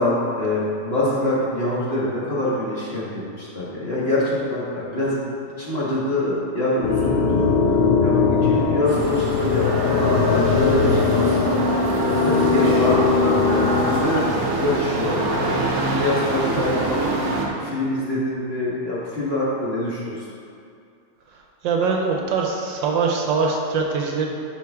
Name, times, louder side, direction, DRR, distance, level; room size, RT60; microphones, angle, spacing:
voice 1, 0.0-3.1 3.4-5.2 5.6-11.6 12.0-17.0 17.5-20.3, left 1 dB, 35° left, -8 dB, 1.6 m, -25 dB
sound 1, 6.8-14.2, left 5 dB, 90° left, 1.5 m, -20 dB
sound 2, 8.9-17.5, right 2 dB, 40° right, 1.1 m, -25 dB
voice 2, 21.3-24.3, right 4 dB, 70° right, 1 dB, 1.4 m, -23 dB
11.0 x 5.0 x 3.5 m, 2.5 s
omnidirectional pair, 2.2 m